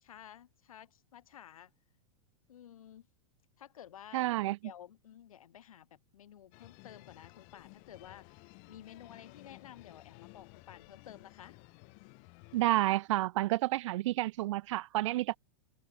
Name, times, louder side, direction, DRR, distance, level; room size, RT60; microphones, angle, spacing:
voice 1, 0.0-1.7 2.5-3.1 3.6-4.3 4.6-11.6, left 10 dB, 85° left, 7.7 m, -53 dB
voice 2, 4.1-4.6 12.5-15.4, right 17 dB, 60° right, 0.5 m, -30 dB
sound 1, 6.5-12.6, left 39 dB, 45° left, 4.4 m, -55 dB
supercardioid pair, 145°, 17 cm